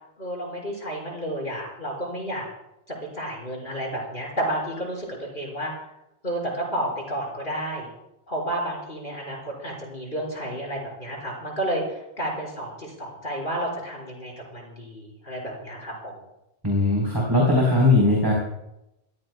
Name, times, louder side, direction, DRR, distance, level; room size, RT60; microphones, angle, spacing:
voice 1, 0.2-2.5 2.9-5.7 6.2-7.9 8.3-16.2, right 1 dB, 50° left, -3 dB, 5.3 m, -31 dB
voice 2, 16.6-18.3, left 2 dB, 20° right, -4 dB, 3.9 m, -19 dB
26.5 x 15.5 x 2.3 m, 0.88 s
omnidirectional pair, 1.1 m